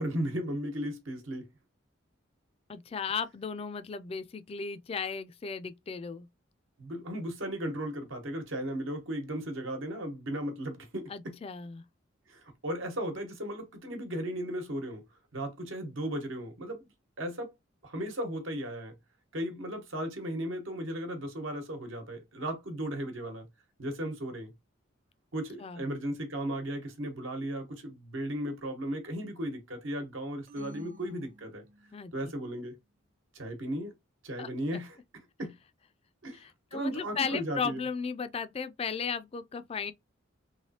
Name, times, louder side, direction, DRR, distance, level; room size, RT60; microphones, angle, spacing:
voice 1, 0.0-1.5 6.8-11.3 12.3-15.0 15.3-16.9 17.2-17.5 17.8-18.9 19.3-23.5 23.8-24.5 25.3-31.6 32.1-32.8 33.3-33.9 34.2-35.0 35.4-35.5 36.2-36.4 36.7-37.8, right 1 dB, 75° right, 1.1 m, -36 dB
voice 2, 2.7-6.3 11.1-11.8 25.6-25.8 31.9-32.1 34.4-34.5 36.3-39.9, left 5 dB, 30° left, 0.3 m, -35 dB
sound 1, 30.5-32.1, right 1 dB, 40° right, 0.8 m, -52 dB
3.2 x 3.0 x 2.8 m
head